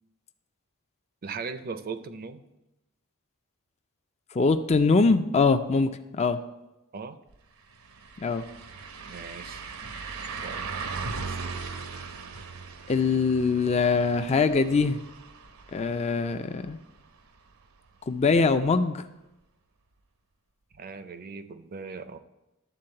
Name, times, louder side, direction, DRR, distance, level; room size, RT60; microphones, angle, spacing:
voice 1, 1.2-2.4 6.9-7.2 9.0-9.6 10.4-10.6 11.2-11.4 20.7-22.2, right 4 dB, 45° right, 11 dB, 0.5 m, -38 dB
voice 2, 4.3-5.9 6.2-6.4 8.2-8.4 12.9-15.0 15.7-16.8 18.1-19.0, left 4 dB, 30° left, 8 dB, 0.4 m, -23 dB
sound 1, 7.3-7.4 7.7-17.5 17.9-18.0 20.7-20.8, right 4 dB, 75° right, 0.8 m, -39 dB
11.5 x 3.8 x 7.7 m, 0.95 s
head